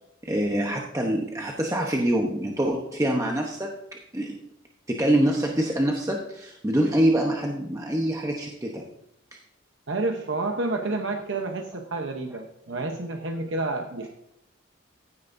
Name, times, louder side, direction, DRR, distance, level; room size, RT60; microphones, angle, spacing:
voice 1, 0.2-3.8 4.1-4.4 4.9-8.9, right 1 dB, 15° right, 0 dB, 0.9 m, -25 dB
voice 2, 9.9-14.1, right 2 dB, 60° right, 4 dB, 0.8 m, -29 dB
15.0 x 9.4 x 2.6 m, 0.79 s
head